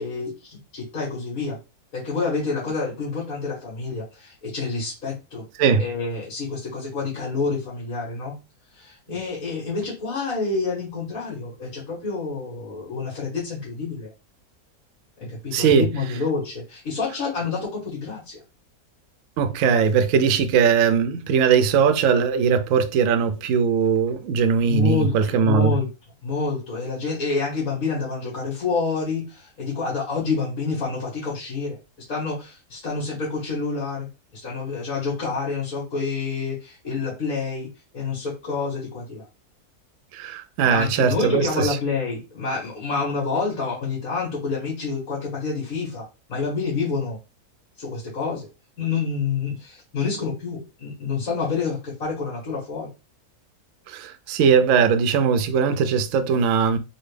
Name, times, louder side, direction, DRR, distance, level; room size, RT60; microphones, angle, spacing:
voice 1, 0.0-1.6 1.9-5.4 5.8-8.3 8.7-14.1 15.3-18.4 24.6-25.9 26.2-31.8 32.1-34.1 34.3-37.7 37.9-39.2 40.6-47.2 47.8-48.5 48.8-52.9, left 4 dB, 60° left, 1.8 m, -28 dB
voice 2, 15.5-15.8 19.4-25.8 40.1-41.7 53.9-56.8, right 6 dB, 65° right, 0.8 m, -20 dB
3.9 x 2.2 x 3.3 m
omnidirectional pair, 1.7 m